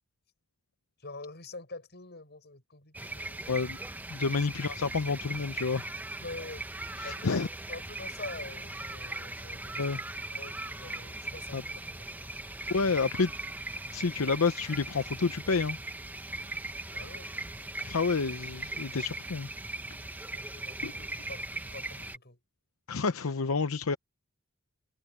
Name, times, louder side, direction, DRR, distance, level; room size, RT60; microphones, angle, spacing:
voice 1, 1.0-3.4 4.2-4.4 6.2-10.0 10.3-12.3 16.9-17.3 20.3-22.4, left 3 dB, 50° left, 7.2 m, -46 dB
sound 1, 2.9-22.2, right 2 dB, 10° right, 0.8 m, -39 dB
voice 2, 3.5-3.8 4.1-5.9 7.0-7.5 9.8-10.0 11.5-11.6 12.7-13.3 13.9-15.8 17.8-19.5 20.8-20.9 22.9-24.0, left 4 dB, 90° left, 0.7 m, -29 dB
head